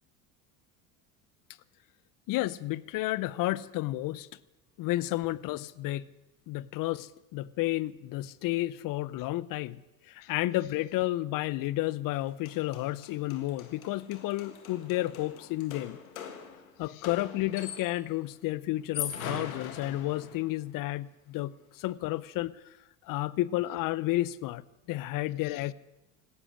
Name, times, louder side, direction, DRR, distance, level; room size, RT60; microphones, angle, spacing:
voice 1, 2.3-4.3 4.8-6.1 6.5-9.8 10.1-16.0 16.8-22.5 23.1-24.6 24.9-25.7, left 16 dB, 55° left, 20 dB, 0.7 m, -31 dB
sound 1, 12.1-12.2 12.5-18.1 18.8-20.6, left 7 dB, 85° left, 1.7 m, -41 dB
17.0 x 13.0 x 6.4 m, 1.0 s
hypercardioid pair, 75°, 41 cm